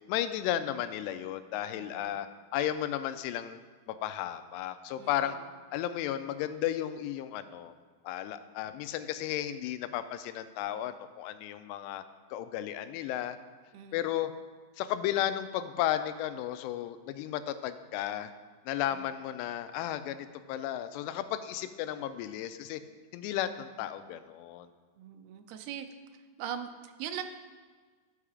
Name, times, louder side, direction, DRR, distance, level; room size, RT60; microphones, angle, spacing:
voice 1, 0.1-2.3 2.5-3.6 3.9-5.4 5.7-7.7 8.0-12.0 12.3-13.4 13.9-14.4 14.8-18.3 18.7-22.8 23.1-24.7, left 11 dB, 90° left, 11 dB, 2.7 m, -34 dB
voice 2, 1.7-2.2 5.0-5.5 13.7-14.1 18.9-19.2 25.0-25.9 26.4-27.2, right 9 dB, 80° right, 7 dB, 2.5 m, -41 dB
12.5 x 5.7 x 4.9 m, 1.5 s
omnidirectional pair, 4.8 m